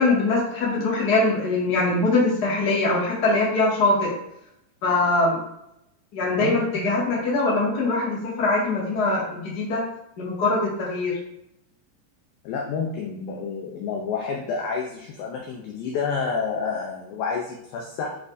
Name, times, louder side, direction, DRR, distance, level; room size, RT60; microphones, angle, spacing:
voice 1, 0.0-4.1 4.8-5.4 6.1-9.8 10.2-11.1, left 2 dB, 45° left, -6 dB, 1.3 m, -22 dB
voice 2, 12.4-18.2, left 5 dB, 85° left, -1 dB, 2.1 m, -29 dB
7.7 x 4.7 x 2.6 m, 0.79 s
omnidirectional pair, 5.1 m